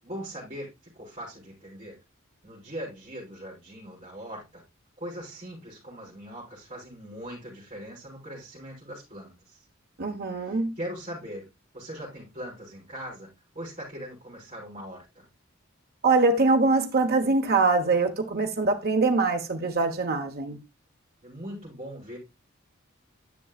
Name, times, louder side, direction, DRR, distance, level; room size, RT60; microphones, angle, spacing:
voice 1, 0.0-2.0 2.4-4.6 5.0-9.6 10.4-11.5 11.7-15.2 21.2-22.2, equal, 30° right, 5.1 m, -40 dB
voice 2, 10.0-10.7 16.0-20.6, right 3 dB, 50° right, 1.2 m, -23 dB
10.5 x 6.4 x 2.4 m
head